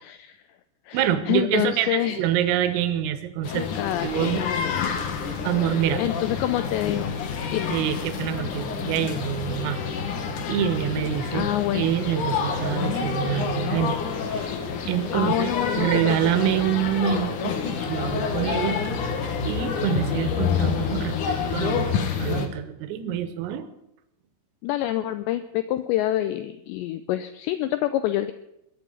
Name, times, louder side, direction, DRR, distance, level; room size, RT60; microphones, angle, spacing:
voice 1, 0.0-0.4 0.9-2.2 3.5-5.0 5.5-7.2 7.5-7.8 11.3-11.9 15.1-16.2 24.6-28.3, left 13 dB, 85° left, 11 dB, 2.5 m, -27 dB
voice 2, 0.9-3.7 4.0-4.5 5.0-5.2 5.4-6.0 7.7-9.8 10.5-11.5 11.7-14.0 14.3-14.6 14.8-18.8 19.5-21.9 22.2-23.7, right 10 dB, 85° right, 11 dB, 3.9 m, -26 dB
sound 1, 3.4-22.5, left 6 dB, 60° left, 2.2 m, -28 dB
21.5 x 9.0 x 7.2 m, 0.83 s
omnidirectional pair, 5.8 m